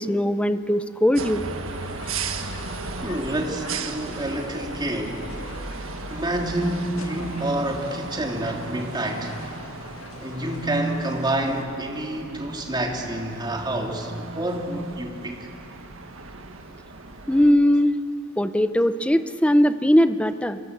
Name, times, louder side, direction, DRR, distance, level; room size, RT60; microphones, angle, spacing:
voice 1, 0.0-1.4 17.3-18.0 18.4-20.6, equal, 5° left, 11 dB, 0.8 m, -20 dB
sound 1, 1.2-17.5, right 3 dB, 70° right, 1.7 m, -36 dB
sound 2, 1.6-11.6, left 3 dB, 90° left, 2.5 m, -43 dB
voice 2, 3.0-5.3 6.1-9.5 10.2-15.5, right 1 dB, 20° right, 1 dB, 3.1 m, -28 dB
28.5 x 22.5 x 8.2 m, 2.7 s
head